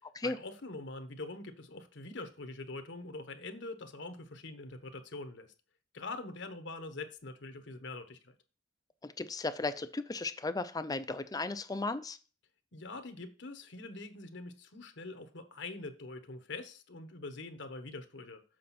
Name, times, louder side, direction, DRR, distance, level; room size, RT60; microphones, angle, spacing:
voice 1, 0.2-5.5 5.9-8.3 12.7-18.4, left 3 dB, 65° left, 1.1 m, -44 dB
voice 2, 9.0-12.2, left 3 dB, 20° left, 0.5 m, -35 dB
7.6 x 5.2 x 4.2 m
head